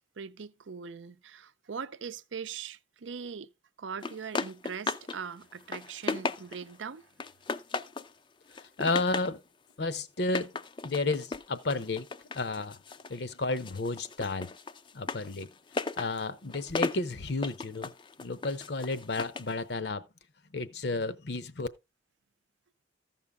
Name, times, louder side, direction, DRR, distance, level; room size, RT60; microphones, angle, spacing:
voice 1, 0.0-3.5 3.8-7.0, right 6 dB, 85° right, 0.6 m, -41 dB
sound 1, 4.0-5.2 5.5-6.8 7.2-8.1 8.5-9.4 10.2-13.2 13.5-19.5, left 4 dB, 25° left, 0.4 m, -36 dB
voice 2, 8.6-9.4 9.8-10.5 10.8-12.1 12.3-12.8 13.1-14.6 14.9-15.5 16.0-17.9 18.2-20.0 20.5-21.7, left 3 dB, 60° left, 0.8 m, -32 dB
14.5 x 5.6 x 3.5 m
head